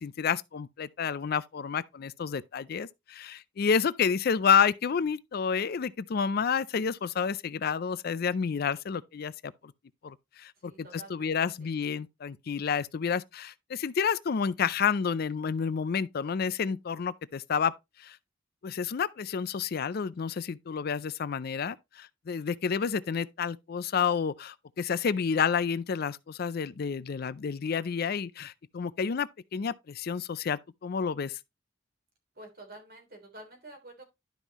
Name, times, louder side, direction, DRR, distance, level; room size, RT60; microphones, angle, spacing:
voice 1, 0.0-9.5 10.0-17.7 18.0-18.2 18.6-31.4, left 6 dB, 55° left, 0.4 m, -30 dB
voice 2, 10.6-11.8 32.4-34.0, right 2 dB, 55° right, 3.4 m, -49 dB
11.5 x 5.4 x 3.0 m
head